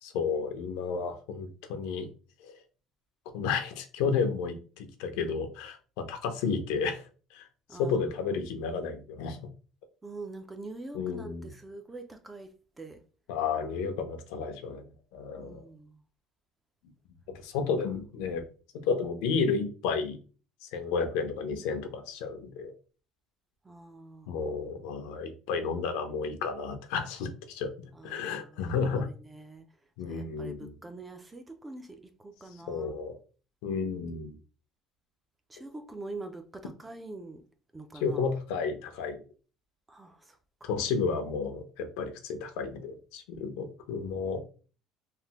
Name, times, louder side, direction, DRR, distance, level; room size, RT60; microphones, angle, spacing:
voice 1, 0.0-2.1 2.4-2.6 3.3-7.0 7.3-7.5 7.8-9.4 10.9-11.5 13.3-14.8 15.1-15.6 17.4-18.5 18.9-20.2 20.6-22.7 24.3-29.1 30.0-30.7 32.7-33.2 33.6-34.4 38.0-39.2 40.6-44.4, left 5 dB, 85° left, 0.6 m, -32 dB
voice 2, 7.7-8.2 10.0-13.0 15.4-16.0 23.6-24.5 27.9-29.7 30.1-33.0 35.5-37.5 37.7-38.3 39.9-40.7, right 2 dB, 10° right, 0.3 m, -45 dB
3.2 x 2.0 x 2.8 m
cardioid pair, 155°, 0 cm